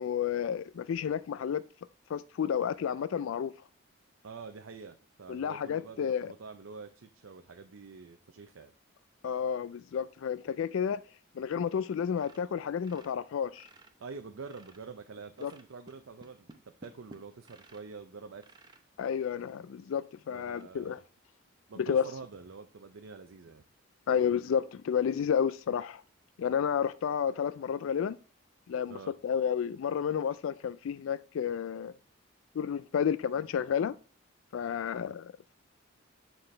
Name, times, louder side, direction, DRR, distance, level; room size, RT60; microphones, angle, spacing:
voice 1, 0.0-1.6 2.1-3.5 5.3-6.3 9.2-11.0 11.4-13.7 15.4-15.5 19.0-21.0 21.8-22.0 24.1-26.0 26.4-28.2 28.7-29.0 29.2-31.9 32.6-34.0 34.5-35.5, left 7 dB, 75° left, 0.3 m, -31 dB
voice 2, 4.2-8.7 14.0-18.6 20.3-21.0 21.7-23.6 28.9-29.1, right 4 dB, 75° right, 0.6 m, -46 dB
sound 1, 12.2-14.0 14.3-14.9 15.4-17.9 18.4-18.9 19.5-19.6 20.0-20.1 20.5-20.7, right 2 dB, 20° right, 0.7 m, -56 dB
9.0 x 5.7 x 3.2 m
head